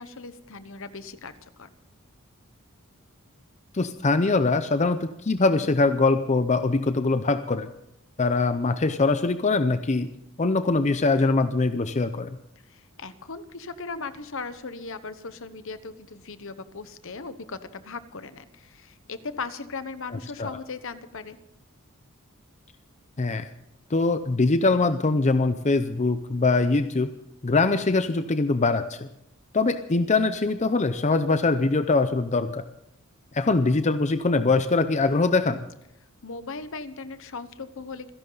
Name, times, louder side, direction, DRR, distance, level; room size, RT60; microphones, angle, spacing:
voice 1, 0.0-1.7 12.6-21.4 36.2-38.1, left 4 dB, 65° left, 12 dB, 1.0 m, -38 dB
voice 2, 3.7-7.7 8.2-10.1 10.4-12.3 20.4-20.6 23.2-23.5 23.9-27.1 27.4-29.1 29.5-32.6 33.3-35.6, left 3 dB, 30° left, 10 dB, 0.6 m, -23 dB
26.5 x 11.5 x 4.0 m, 0.78 s
head